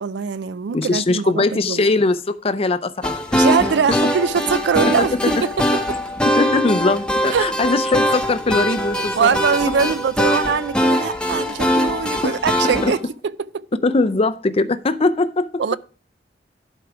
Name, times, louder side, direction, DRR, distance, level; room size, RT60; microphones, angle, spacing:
voice 1, 0.0-1.9 3.3-6.0 7.3-7.5 9.0-13.0 13.2-13.6 15.6-15.8, right 6 dB, 65° right, 0.4 m, -22 dB
voice 2, 0.7-3.4 3.9-4.0 4.8-5.4 6.4-9.4 12.2-12.4 12.6-12.9 13.8-15.5, left 3 dB, 30° left, 0.5 m, -21 dB
sound 1, 3.0-13.0, equal, 5° left, 0.8 m, -22 dB
11.5 x 4.6 x 4.8 m
head